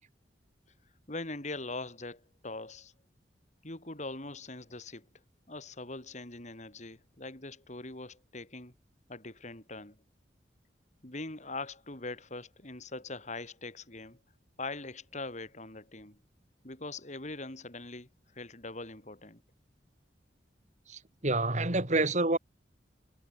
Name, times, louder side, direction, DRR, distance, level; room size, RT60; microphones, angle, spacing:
voice 1, 1.1-2.9 3.6-5.1 5.5-8.7 9.1-10.0 11.0-14.2 14.6-16.2 16.6-18.1 18.3-19.4, left 2 dB, 40° left, 3.4 m, -42 dB
voice 2, 20.9-22.4, right 2 dB, 40° right, 2.8 m, -28 dB
head